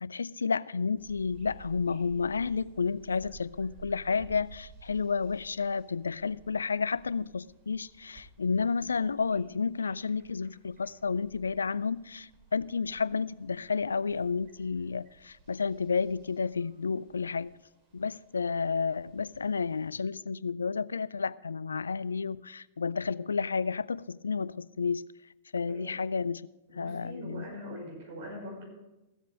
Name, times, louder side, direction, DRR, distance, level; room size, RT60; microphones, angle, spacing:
voice 1, 0.0-17.5 17.9-25.1 25.5-27.4, left 5 dB, 75° left, 0.3 m, -31 dB
sound 1, 1.0-19.9, right 4 dB, 35° right, 3.5 m, -56 dB
voice 2, 26.7-28.7, equal, 55° right, 5.8 m, -42 dB
15.5 x 8.2 x 5.2 m
figure-of-eight pair, 100°, 0 cm